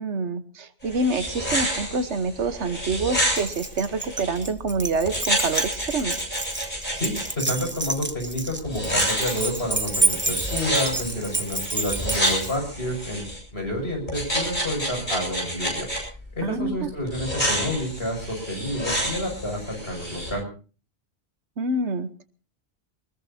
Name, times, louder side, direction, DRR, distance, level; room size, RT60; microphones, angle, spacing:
voice 1, 0.0-6.1 16.4-16.9 21.6-22.3, right 3 dB, 85° right, 11 dB, 1.4 m, -27 dB
sound 1, 0.8-4.4 5.1-7.2 8.6-13.4 14.1-16.0 17.1-20.3, equal, 45° left, 8.2 m, -29 dB
Keys jangling, 3.4-12.6, right 3 dB, 10° right, 0.8 m, -29 dB
voice 2, 6.9-13.2 13.5-15.9 16.3-20.4, left 1 dB, 65° left, 2 dB, 6.3 m, -29 dB
23.0 x 20.5 x 2.8 m, 0.38 s
omnidirectional pair, 1.1 m